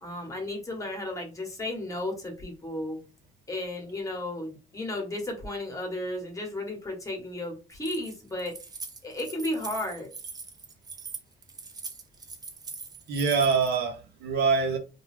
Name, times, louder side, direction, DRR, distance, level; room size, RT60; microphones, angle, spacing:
voice 1, 0.0-3.0 3.5-8.5 9.0-10.1, left 1 dB, 20° left, 1.0 m, -34 dB
Keys jangling, 7.7-13.8, right 4 dB, 25° right, 0.5 m, -42 dB
voice 2, 13.1-14.8, right 5 dB, 75° right, 0.8 m, -25 dB
2.3 x 2.2 x 3.2 m
cardioid pair, 110°, 17 cm